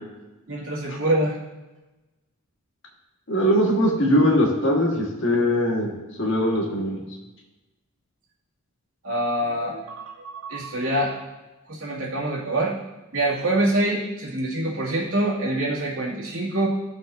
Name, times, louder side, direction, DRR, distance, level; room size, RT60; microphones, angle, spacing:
voice 1, 0.5-1.4 9.0-11.2 11.7-12.8 13.1-16.7, right 1 dB, 70° right, -5 dB, 2.2 m, -25 dB
voice 2, 3.3-5.9 6.2-7.0, equal, 55° left, -1 dB, 1.5 m, -21 dB
14.5 x 5.9 x 2.6 m, 1.1 s
head